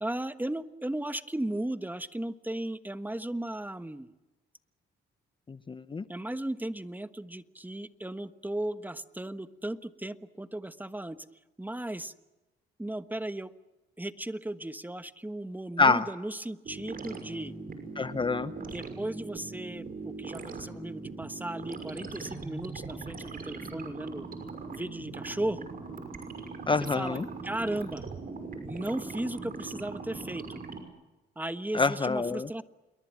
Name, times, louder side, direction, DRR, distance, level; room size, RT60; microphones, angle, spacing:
voice 1, 0.0-4.1 6.1-11.2 11.6-12.1 12.8-13.5 14.0-17.5 18.6-24.3 24.7-25.7 26.8-28.0 28.6-30.6 31.3-32.6, right 1 dB, 10° right, 11 dB, 1.3 m, -36 dB
voice 2, 5.5-6.0 15.8-16.0 18.0-18.5 26.7-27.2 31.7-32.5, left 4 dB, 25° left, 13 dB, 0.8 m, -26 dB
sound 1, 16.7-30.8, right 4 dB, 45° right, 6.0 m, -41 dB
28.0 x 22.5 x 7.6 m, 1.1 s
cardioid pair, 90°, 20 cm